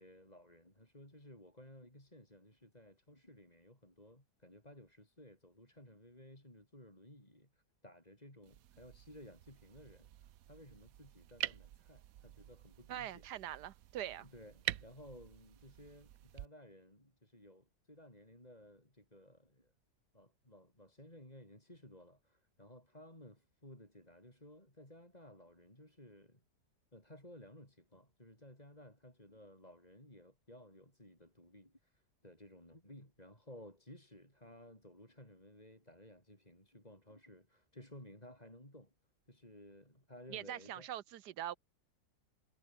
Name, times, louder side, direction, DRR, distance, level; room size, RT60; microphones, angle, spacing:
voice 1, 0.0-13.3 14.2-19.7 20.1-26.4 26.9-38.9 39.3-40.9, left 1 dB, 25° left, 7.4 m, -57 dB
sound 1, 8.4-16.5, right 12 dB, 65° right, 1.1 m, -47 dB
voice 2, 12.9-14.3 40.3-41.6, right 11 dB, 85° right, 1.4 m, -43 dB
omnidirectional pair, 1.7 m